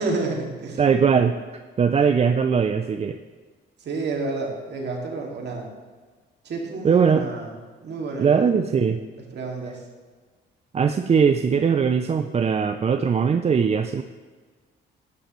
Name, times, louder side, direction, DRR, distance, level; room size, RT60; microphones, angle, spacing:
voice 1, 0.0-0.8 3.8-5.7 6.4-7.5 7.8-8.9 9.2-9.8, right 3 dB, 60° right, -1 dB, 2.3 m, -30 dB
voice 2, 0.8-1.4 1.8-3.2 6.8-7.2 8.2-9.0 10.7-14.0, right 6 dB, 30° right, 8 dB, 0.4 m, -20 dB
12.0 x 8.8 x 3.1 m, 1.4 s
cardioid pair, 90°, 20 cm